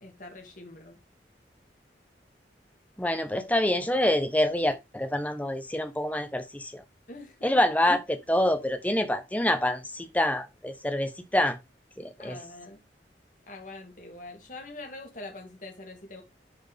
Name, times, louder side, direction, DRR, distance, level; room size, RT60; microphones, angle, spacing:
voice 1, 0.0-1.0 7.1-7.5 12.2-12.8 13.5-16.2, left 2 dB, 45° left, 2.1 m, -44 dB
voice 2, 3.0-6.8 7.4-11.6 12.0-12.4, left 1 dB, 10° left, 1.0 m, -26 dB
10.5 x 4.5 x 3.5 m
head